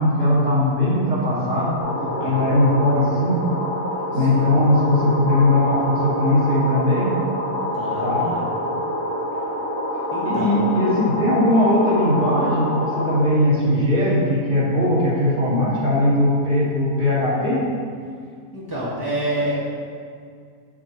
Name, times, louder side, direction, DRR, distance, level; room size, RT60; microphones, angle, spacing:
voice 1, 0.0-1.8 2.2-3.4 4.1-7.1 8.0-8.2 10.2-17.6, left 1 dB, 55° right, -8 dB, 2.3 m, -19 dB
sound 1, 1.8-13.3, left 1 dB, 65° left, 1.4 m, -26 dB
voice 2, 1.9-2.5 4.1-4.5 7.7-8.5 10.1-10.6 18.5-19.5, right 1 dB, 15° left, -9 dB, 1.4 m, -29 dB
7.4 x 7.1 x 3.0 m, 2.1 s
omnidirectional pair, 1.5 m